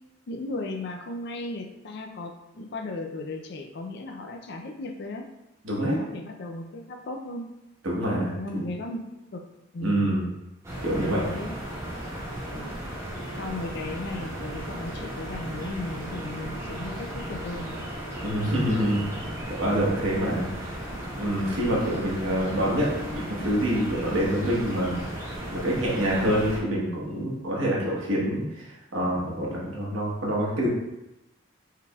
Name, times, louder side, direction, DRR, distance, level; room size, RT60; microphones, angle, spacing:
voice 1, 0.3-5.3 6.0-7.4 8.3-9.5 9.7-10.1 10.9-11.5 12.5-12.8 13.4-17.9, left 2 dB, 55° left, 3 dB, 0.5 m, -36 dB
voice 2, 5.6-6.0 7.8-8.6 9.8-10.3 10.8-11.2 18.2-20.8 21.2-25.0 25.5-30.7, equal, 80° right, -5 dB, 1.2 m, -26 dB
sound 1, 10.6-26.6, right 1 dB, 15° right, 1.0 m, -35 dB
4.6 x 3.4 x 2.3 m, 0.96 s
head